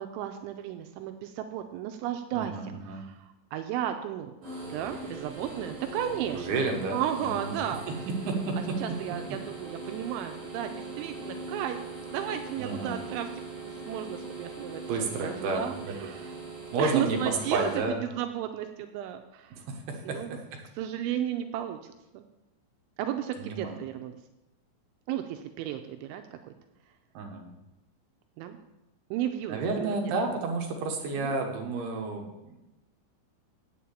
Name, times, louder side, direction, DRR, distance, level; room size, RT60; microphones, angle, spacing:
voice 1, 0.0-4.3 4.7-6.5 6.9-7.8 8.8-11.8 12.1-13.3 13.6-14.8 15.2-16.3 16.8-19.6 20.0-20.4 20.8-22.2 23.0-24.2 25.1-26.5 28.4-28.6 29.1-30.0 31.2-31.3, right 10 dB, 85° right, 6 dB, 2.9 m, -34 dB
voice 2, 2.3-3.0 6.3-7.6 7.9-8.8 12.6-13.0 14.9-15.9 16.7-18.0 19.5-20.2 23.4-23.8 27.1-27.5 29.5-32.6, right 3 dB, 65° right, 2 dB, 2.9 m, -31 dB
sound 1, 4.4-17.8, right 3 dB, 40° right, 4.1 m, -41 dB
8.7 x 7.5 x 7.2 m, 0.97 s
omnidirectional pair, 5.5 m